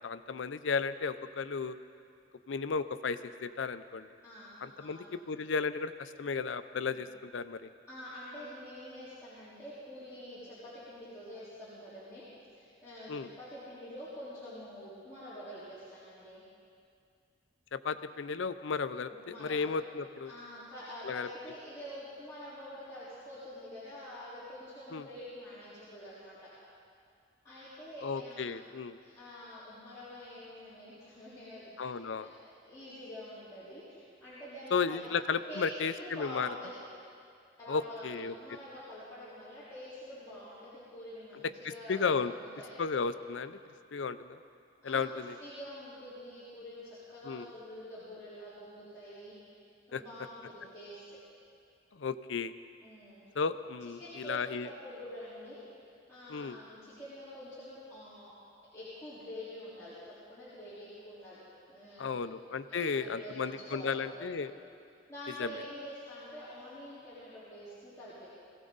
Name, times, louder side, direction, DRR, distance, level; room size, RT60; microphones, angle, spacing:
voice 1, 0.0-1.8 2.5-4.1 4.6-7.6 13.1-13.3 17.7-20.3 21.0-21.3 24.9-25.1 28.0-29.0 31.8-32.3 34.7-36.5 37.7-38.3 41.9-42.3 42.8-43.6 43.9-44.4 44.8-45.4 47.2-47.5 49.9-50.0 51.9-52.5 53.4-54.7 56.3-56.6 62.0-64.5 65.4-65.5, left 5 dB, 80° left, 12 dB, 0.5 m, -34 dB
voice 2, 4.2-5.2 6.9-7.0 7.9-16.4 19.0-19.6 20.2-26.5 27.4-28.6 29.0-35.0 35.5-35.7 36.0-36.8 37.6-42.1 42.4-42.8 44.8-49.3 49.9-51.2 52.8-53.2 54.0-55.8 56.1-58.3 58.7-62.2 62.7-64.5 65.1-68.3, equal, 15° left, -14 dB, 3.9 m, -47 dB
21.0 x 16.0 x 4.0 m, 2.3 s
head